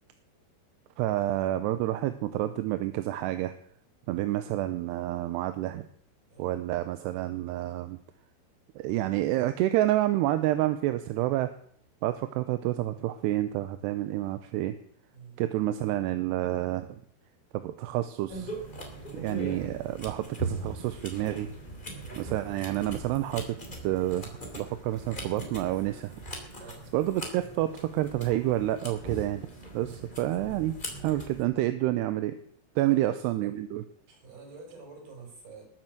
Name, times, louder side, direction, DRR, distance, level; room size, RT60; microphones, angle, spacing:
voice 1, 1.0-3.5 4.1-5.8 6.4-8.0 8.8-11.5 12.0-14.7 15.4-17.0 17.5-18.5 19.1-21.5 22.2-23.5 23.8-24.3 24.5-26.2 26.9-29.5 29.7-30.8 31.0-32.4 32.8-33.8, right 14 dB, 85° right, 10 dB, 2.9 m, -29 dB
sound 1, 18.3-31.4, right 1 dB, 15° left, 2.6 m, -40 dB
voice 2, 32.8-33.4 34.1-35.6, right 5 dB, 60° right, 2 dB, 7.2 m, -48 dB
20.5 x 7.6 x 7.8 m, 0.63 s
omnidirectional pair, 4.8 m